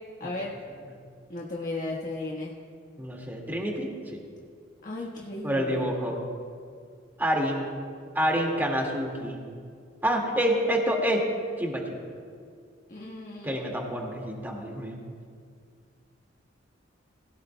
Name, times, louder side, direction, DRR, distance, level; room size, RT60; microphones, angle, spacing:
voice 1, 0.2-0.5 1.3-2.5 4.8-5.8 12.9-13.5, left 2 dB, 45° left, -3 dB, 1.4 m, -35 dB
voice 2, 3.0-3.9 5.4-6.2 7.2-7.6 8.1-9.4 10.0-11.2 11.6-12.0 13.4-15.0, equal, 10° right, -1 dB, 2.0 m, -27 dB
21.0 x 17.5 x 2.2 m, 2.1 s
head